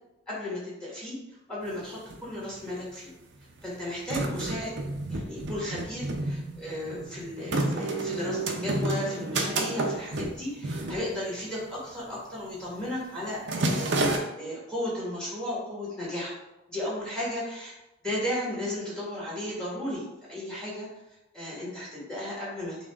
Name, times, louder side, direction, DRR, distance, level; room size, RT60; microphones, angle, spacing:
voice 1, 0.3-1.2 1.5-3.1 3.6-4.7 5.1-16.3 16.7-17.7 18.0-20.9 21.3-22.8, left 1 dB, 5° left, -6 dB, 1.4 m, -34 dB
sound 1, 1.7-1.8 1.9-2.8 3.4-11.7 12.0-12.3 12.6-12.9 13.2-14.2, right 2 dB, 60° right, 0.6 m, -30 dB
6.1 x 2.4 x 3.4 m, 0.95 s
head